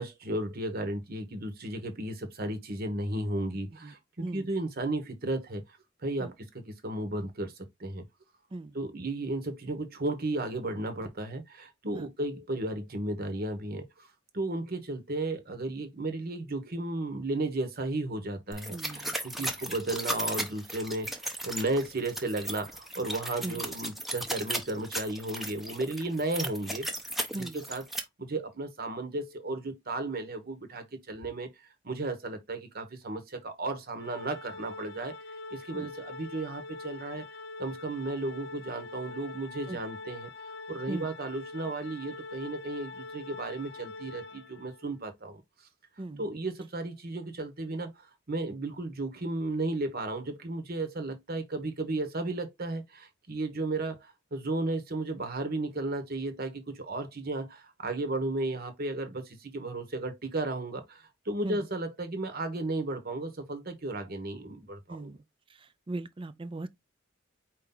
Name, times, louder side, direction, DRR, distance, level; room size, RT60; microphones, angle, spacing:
voice 1, 0.0-5.8 6.0-7.5 7.8-8.0 8.7-14.1 14.3-26.9 27.3-27.8 28.2-31.5 31.8-35.2 35.5-37.3 37.6-40.3 40.7-45.4 46.2-65.1, right 2 dB, 50° right, 1.1 m, -34 dB
sound 1, 18.5-28.0, right 1 dB, ahead, 0.7 m, -36 dB
voice 2, 18.7-19.5 23.4-23.6 27.3-27.6 35.7-35.9 39.7-39.8 40.9-41.1 46.0-46.2 61.4-61.6 64.9-65.2 65.6-66.7, right 2 dB, 25° right, 0.5 m, -38 dB
Organ, 34.0-44.9, left 3 dB, 50° left, 0.8 m, -44 dB
4.7 x 2.8 x 3.8 m
head